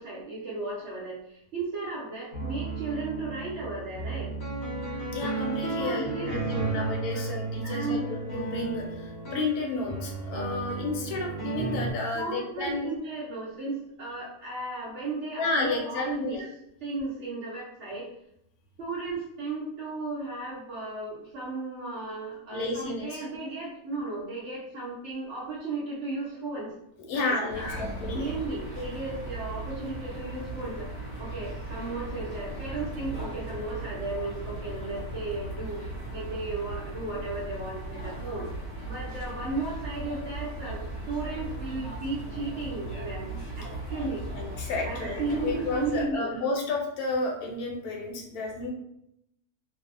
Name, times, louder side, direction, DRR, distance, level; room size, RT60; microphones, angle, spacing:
voice 1, 0.0-4.3 5.8-6.9 7.1-8.2 12.1-16.5 16.8-18.1 18.8-26.7 27.1-27.9 28.1-38.5 38.8-40.8 41.1-43.3 43.6-44.3 44.8-46.4, right 2 dB, 60° right, -6 dB, 0.8 m, -35 dB
sound 1, 2.3-11.9, right 3 dB, 55° left, 0.8 m, -33 dB
voice 2, 5.1-12.9 15.4-16.4 22.5-23.2 27.1-28.3 44.4-48.7, left 3 dB, 75° left, 0 dB, 1.0 m, -32 dB
sound 2, 27.5-46.0, right 1 dB, 40° left, 1.1 m, -37 dB
2.6 x 2.0 x 2.4 m, 0.78 s
omnidirectional pair, 1.7 m